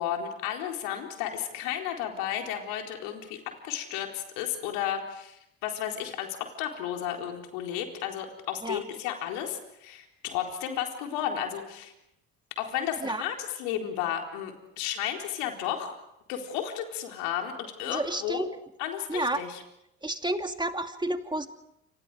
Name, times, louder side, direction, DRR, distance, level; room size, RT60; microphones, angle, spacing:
voice 1, 0.0-11.9 12.6-16.0 16.3-18.5 18.8-19.6, left 10 dB, 75° left, 2 dB, 4.2 m, -33 dB
voice 2, 17.8-18.5 19.1-19.4 20.0-21.5, right 1 dB, 15° right, 6 dB, 2.6 m, -30 dB
29.0 x 27.0 x 5.1 m, 0.83 s
hypercardioid pair, 60°, 36 cm